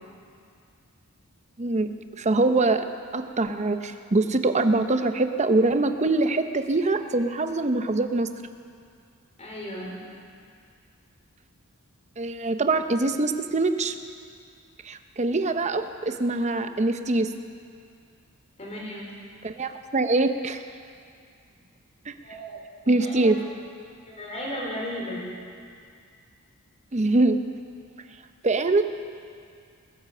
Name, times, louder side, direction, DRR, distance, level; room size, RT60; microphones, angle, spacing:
voice 1, 1.6-2.9 3.1-8.3 12.2-13.9 14.8-17.3 19.4-20.6 22.1-22.2 22.9-23.4 26.9-27.4 28.4-28.8, right 2 dB, 30° right, 8 dB, 0.7 m, -23 dB
voice 2, 9.4-10.0 18.6-19.1 22.2-23.3 24.0-25.4, equal, 30° left, -4 dB, 4.0 m, -35 dB
21.0 x 9.9 x 6.7 m, 2.3 s
head